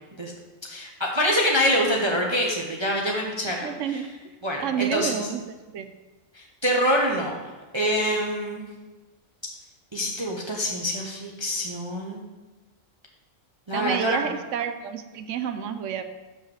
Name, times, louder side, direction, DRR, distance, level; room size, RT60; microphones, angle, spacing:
voice 1, 0.6-4.0 4.4-5.1 6.3-7.4 7.7-8.6 9.9-12.2 13.7-14.2, equal, 25° right, -1 dB, 0.7 m, -25 dB
voice 2, 3.6-4.1 4.6-5.9 13.7-16.0, right 8 dB, 70° right, 9 dB, 0.9 m, -29 dB
5.8 x 5.3 x 6.5 m, 1.2 s
omnidirectional pair, 1.4 m